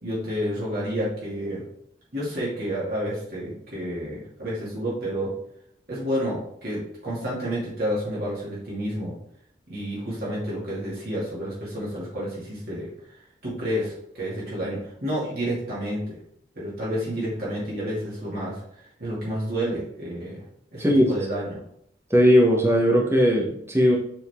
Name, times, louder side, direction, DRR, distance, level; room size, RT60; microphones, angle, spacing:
voice 1, 0.0-1.7 2.1-5.3 5.9-9.1 9.7-12.9 13.4-16.2 16.5-18.6 19.0-20.4 20.7-21.6, equal, 50° right, -7 dB, 2.5 m, -30 dB
voice 2, 20.8-21.1 22.1-24.0, equal, 15° right, -1 dB, 1.1 m, -18 dB
6.9 x 3.9 x 3.7 m, 0.70 s
head